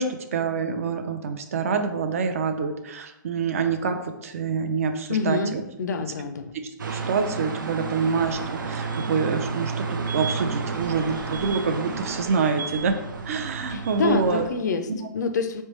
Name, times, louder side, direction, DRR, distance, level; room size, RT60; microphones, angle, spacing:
voice 1, 0.0-5.6 6.9-13.0 13.2-14.4 14.9-15.0, right 5 dB, 45° right, 7 dB, 0.4 m, -26 dB
voice 2, 5.1-6.5 13.7-14.9 15.1-15.6, left 4 dB, 65° left, 8 dB, 0.5 m, -26 dB
sound 1, 6.8-14.5, right 4 dB, 85° right, 0.6 m, -31 dB
4.2 x 3.2 x 3.1 m, 0.90 s
hypercardioid pair, 165°, 10 cm